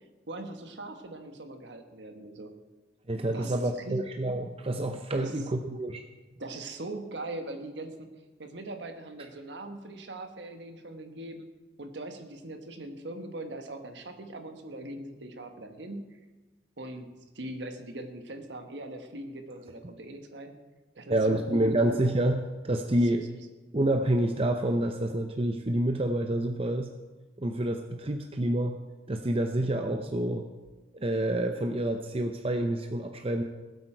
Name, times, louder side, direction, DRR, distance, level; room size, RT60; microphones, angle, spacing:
voice 1, 0.3-2.5 3.3-4.0 5.2-5.3 6.4-8.1 8.4-11.5 11.8-16.2 16.8-17.1 17.3-20.5 20.9-21.8 22.9-23.5, right 2 dB, 60° right, 6 dB, 1.3 m, -41 dB
voice 2, 3.1-6.0 21.1-23.2 23.7-26.9 27.4-28.8 29.1-30.4 30.9-33.4, right 1 dB, 30° right, 6 dB, 0.6 m, -28 dB
19.0 x 8.1 x 4.5 m, 1.2 s
head